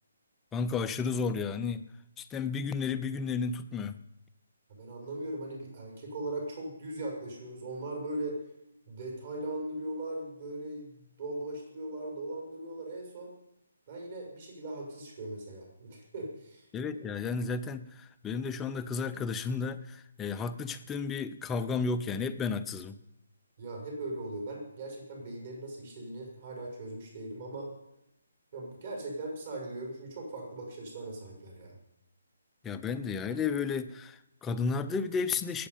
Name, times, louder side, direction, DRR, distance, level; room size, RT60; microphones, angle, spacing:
voice 1, 0.5-1.9 2.2-4.0 16.7-23.0 32.6-35.7, left 5 dB, 10° left, 9 dB, 0.6 m, -33 dB
voice 2, 4.8-8.4 8.9-13.3 13.9-16.7 16.9-17.0 23.6-27.7 28.5-31.8, right 1 dB, 45° right, 0 dB, 5.8 m, -39 dB
20.5 x 8.5 x 5.5 m, 0.85 s
figure-of-eight pair, 140°, 0 cm